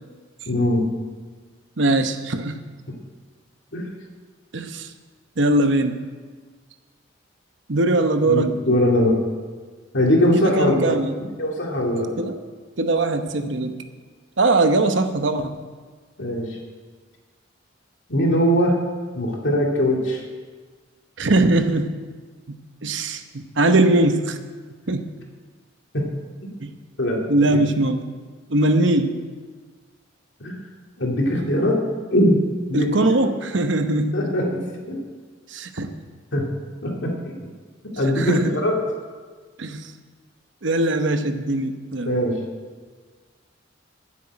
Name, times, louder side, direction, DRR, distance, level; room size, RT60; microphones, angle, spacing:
voice 1, 0.5-0.8 3.7-3.9 8.3-9.2 9.9-10.9 11.4-12.1 16.2-16.6 18.1-18.8 19.1-20.2 25.9-26.0 26.4-26.5 27.0-27.2 27.5-27.6 30.4-30.5 31.0-31.8 32.1-32.4 32.7-32.9 34.1-35.0 36.3-36.5 36.8-37.3 38.0-38.8 42.0-42.4, left 1 dB, 70° left, -1 dB, 2.5 m, -21 dB
voice 2, 1.8-2.6 4.5-4.9 5.4-6.0 7.7-8.6 10.4-11.1 12.2-12.4 12.8-13.7 14.4-15.6 21.2-21.9 22.5-22.6 22.8-24.4 24.9-25.1 26.6-26.7 27.3-28.0 28.5-29.2 32.7-34.2 35.5-35.9 38.2-38.6 39.6-39.9 40.6-42.2, right 2 dB, 65° right, 8 dB, 0.9 m, -21 dB
10.0 x 7.6 x 8.8 m, 1.5 s
head